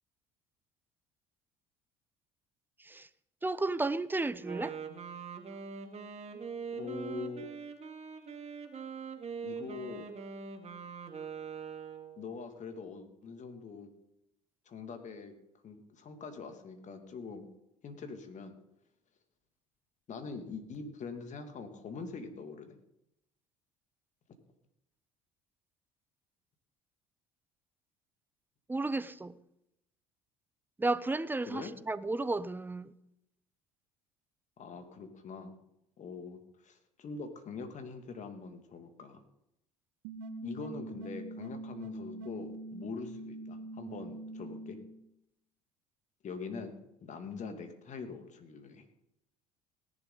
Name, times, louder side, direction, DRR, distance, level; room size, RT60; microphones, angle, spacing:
voice 1, 3.4-4.7 28.7-29.3 30.8-32.9, right 2 dB, 10° right, 0.8 m, -33 dB
Wind instrument woodwind instrument, 4.3-12.2, right 6 dB, 35° right, 2.0 m, -43 dB
voice 2, 6.7-7.5 9.4-10.1 12.2-13.9 14.7-15.3 15.6-17.5 17.8-18.5 20.1-22.8 31.5-31.7 34.6-35.5 36.0-39.2 40.4-44.8 46.2-46.7 47.0-48.8, left 4 dB, 45° left, 2.4 m, -43 dB
sound 1, 40.0-45.0, right 2 dB, 65° right, 1.3 m, -43 dB
18.0 x 11.0 x 4.0 m
figure-of-eight pair, 60°, 18 cm